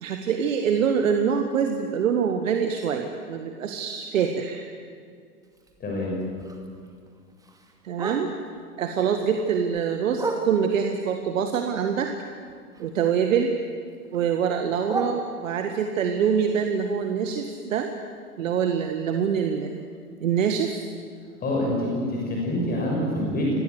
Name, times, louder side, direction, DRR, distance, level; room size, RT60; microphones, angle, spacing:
voice 1, 0.0-4.7 7.8-8.3 8.8-12.1 12.8-13.6 14.1-17.9 18.4-19.8 20.2-20.8, right 7 dB, 55° right, 5 dB, 1.9 m, -25 dB
Bark, 5.4-8.6 9.0-10.9 11.4-13.2 13.5-15.8 16.3-20.2 20.5-20.6 20.9-21.3 21.7-21.8 22.2-22.3 22.8-22.9, right 3 dB, 5° right, 2.3 m, -38 dB
voice 2, 5.8-6.2 21.4-23.6, left 1 dB, 20° left, -2 dB, 6.0 m, -26 dB
26.0 x 19.5 x 8.1 m, 2.2 s
figure-of-eight pair, 105°, 47 cm